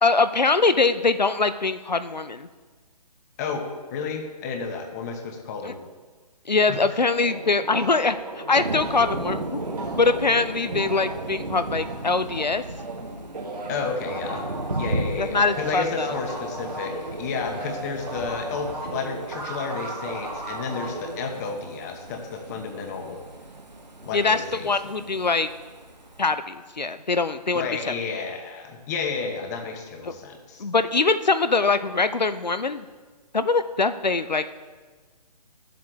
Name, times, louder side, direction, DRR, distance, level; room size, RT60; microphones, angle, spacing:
voice 1, 0.0-2.5 5.6-5.7 6.5-9.6 10.0-12.6 15.2-16.1 24.1-25.5 26.2-27.7 30.0-30.1 30.6-32.8 33.3-34.4, left 4 dB, 90° left, 12 dB, 0.6 m, -23 dB
voice 2, 3.4-5.8 6.7-6.8 13.7-14.4 14.8-23.2 24.0-24.7 27.5-30.6, left 5 dB, 25° left, 4 dB, 1.0 m, -31 dB
sound 1, 7.1-13.0 13.3-21.3, right 2 dB, 65° right, 1.9 m, -36 dB
Thunder, 8.5-26.3, right 2 dB, 85° right, 1.0 m, -36 dB
13.0 x 7.8 x 3.2 m, 1.4 s
figure-of-eight pair, 135°, 21 cm